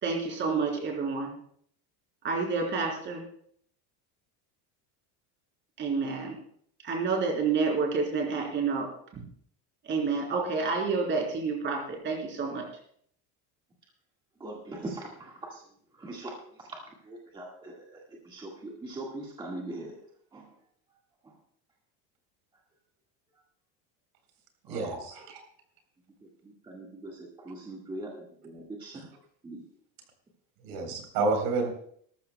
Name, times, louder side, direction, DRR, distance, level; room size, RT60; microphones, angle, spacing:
voice 1, 0.0-1.3 2.2-3.2 5.8-6.4 6.8-8.9 9.1-9.2 9.9-12.7, right 4 dB, 25° right, 0 dB, 3.7 m, -29 dB
voice 2, 14.4-15.6 16.0-16.3 16.6-20.0 20.3-20.5 24.7-25.0 26.4-29.0 29.4-29.6, right 2 dB, 10° right, -2 dB, 1.7 m, -41 dB
voice 3, 24.7-25.1 28.9-29.1 30.6-31.7, right 3 dB, 75° right, 4 dB, 3.9 m, -29 dB
20.0 x 13.5 x 2.2 m, 0.62 s
cardioid pair, 180°, 42 cm